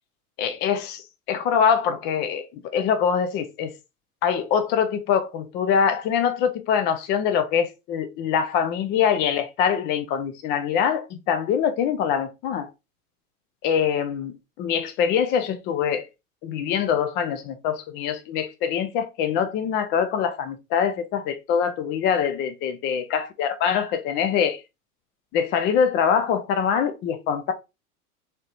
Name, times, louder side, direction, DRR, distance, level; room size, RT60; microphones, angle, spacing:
voice 1, 0.4-3.7 4.2-12.7 13.6-16.1 16.4-24.6 25.3-27.5, left 7 dB, 25° left, 0.4 m, -24 dB
3.1 x 2.8 x 2.5 m
figure-of-eight pair, 85°, 44 cm